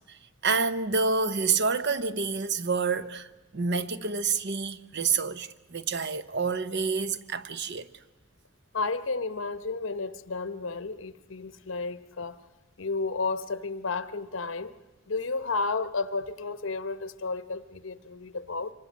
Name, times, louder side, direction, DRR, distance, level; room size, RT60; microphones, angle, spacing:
voice 1, 0.4-3.3 3.5-7.9, right 4 dB, 60° right, 0.9 m, -28 dB
voice 2, 8.7-12.4 12.8-14.7 15.1-18.7, left 3 dB, 70° left, 0.9 m, -32 dB
26.5 x 24.0 x 6.4 m
head